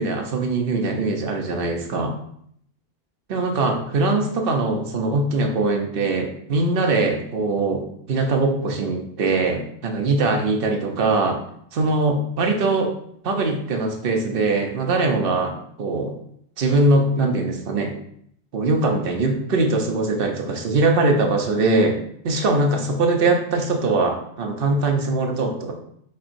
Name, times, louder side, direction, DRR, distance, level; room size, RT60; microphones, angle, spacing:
voice 1, 0.0-2.1 3.3-11.4 11.7-12.9 13.2-16.1 16.6-17.9 18.5-25.7, right 2 dB, 60° right, 3 dB, 0.9 m, -22 dB
4.7 x 4.3 x 2.5 m, 0.68 s
omnidirectional pair, 1.1 m